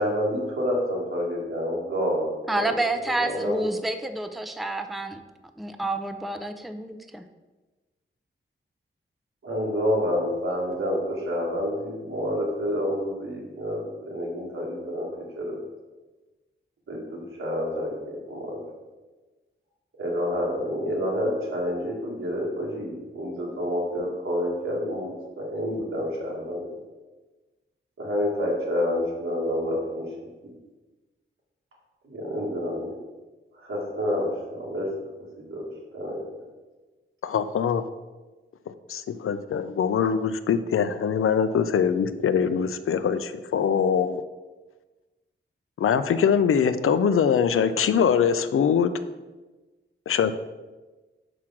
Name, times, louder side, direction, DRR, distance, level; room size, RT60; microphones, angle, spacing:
voice 1, 0.0-3.6 9.4-15.6 16.9-18.6 20.0-26.7 28.0-30.1 32.0-32.9 33.5-34.9 35.4-36.2, equal, 85° right, -3 dB, 2.3 m, -28 dB
voice 2, 2.5-5.2 5.6-7.3, right 2 dB, ahead, 7 dB, 0.5 m, -29 dB
voice 3, 37.2-37.8 38.9-44.2 45.8-48.9 50.1-50.3, left 7 dB, 90° left, 11 dB, 0.5 m, -23 dB
6.1 x 5.0 x 5.8 m, 1.2 s
wide cardioid pair, 100°, 21 cm